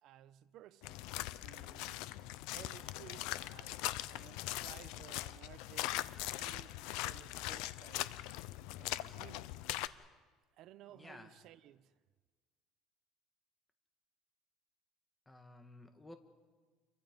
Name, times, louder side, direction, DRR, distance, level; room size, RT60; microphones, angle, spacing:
voice 1, 0.0-2.2 2.5-5.9 6.4-8.2 8.8-9.6 10.5-12.0, right 12 dB, 55° right, 1.0 m, -57 dB
sound 1, 0.8-9.9, left 16 dB, 80° left, 0.7 m, -41 dB
voice 2, 10.9-11.3 15.3-16.2, left 1 dB, 10° left, 1.8 m, -54 dB
29.5 x 23.5 x 5.3 m
cardioid pair, 140°, 0 cm